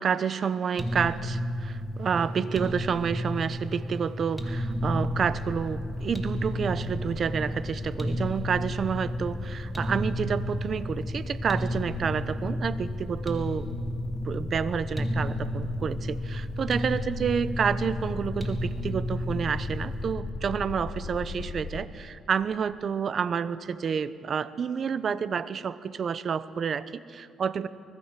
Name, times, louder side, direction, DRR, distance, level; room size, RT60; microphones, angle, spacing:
voice 1, 0.0-13.7 14.2-27.7, right 6 dB, 50° right, 15 dB, 1.0 m, -29 dB
sound 1, 0.8-20.1, equal, 10° right, 3.4 m, -32 dB
sound 2, 4.7-21.8, left 3 dB, 65° left, 3.2 m, -39 dB
25.0 x 20.5 x 7.5 m, 2.3 s
cardioid pair, 90°, 0 cm